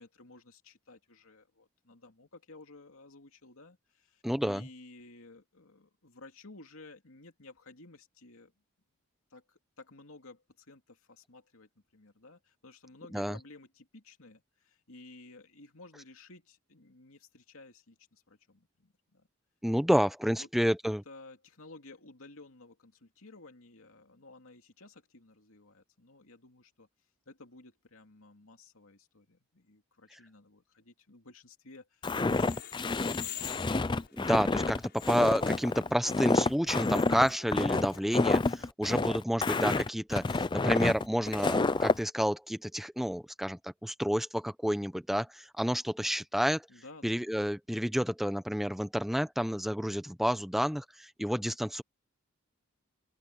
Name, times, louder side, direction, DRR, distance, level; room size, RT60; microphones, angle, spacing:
voice 1, 0.0-8.5 9.3-19.3 20.3-20.7 21.1-26.9 27.3-33.5 46.7-47.2, left 2 dB, 75° left, 2.6 m, -54 dB
voice 2, 4.2-4.7 13.1-13.4 19.6-21.0 34.1-46.6 47.0-51.8, equal, ahead, 0.8 m, -30 dB
Walk footsteps, 32.0-42.0, left 3 dB, 20° left, 0.4 m, -29 dB
sound 1, 32.2-38.7, left 10 dB, 50° left, 6.3 m, -47 dB
open air
head